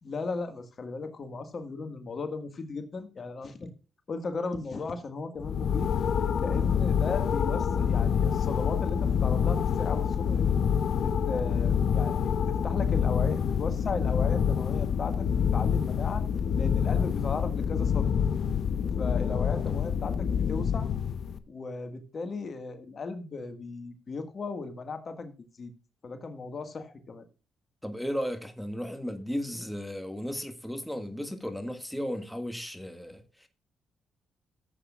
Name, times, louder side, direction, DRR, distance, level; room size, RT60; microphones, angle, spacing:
voice 1, 0.0-3.7 4.1-5.9 6.4-10.5 11.0-16.2 16.6-18.1 19.0-20.9 21.5-25.3 25.6-25.7 26.0-27.3, left 4 dB, 50° left, 1.6 m, -36 dB
sound 1, 5.4-21.4, left 7 dB, 65° left, 0.8 m, -27 dB
voice 2, 27.8-33.5, equal, ahead, 1.7 m, -35 dB
14.0 x 8.1 x 2.4 m
supercardioid pair, 60°, 0 cm